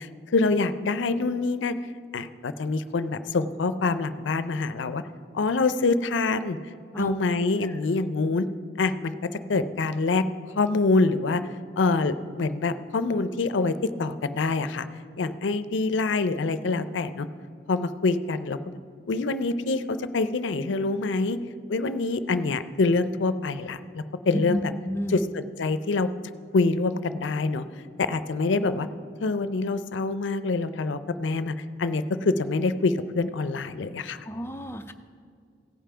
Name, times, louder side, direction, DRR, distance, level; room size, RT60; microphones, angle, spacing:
voice 1, 0.0-1.8 2.1-5.0 5.3-6.6 7.0-8.5 8.8-9.1 9.5-10.3 10.6-11.4 11.8-14.9 15.2-17.3 17.7-18.6 19.1-21.4 21.7-24.7 25.1-26.1 26.5-27.6 28.0-28.9 29.2-31.5 31.8-34.2, left 3 dB, 85° left, 13 dB, 0.5 m, -25 dB
voice 2, 24.3-25.2 34.3-34.9, equal, 15° left, 7 dB, 0.4 m, -31 dB
16.5 x 5.7 x 4.9 m, 2.3 s
head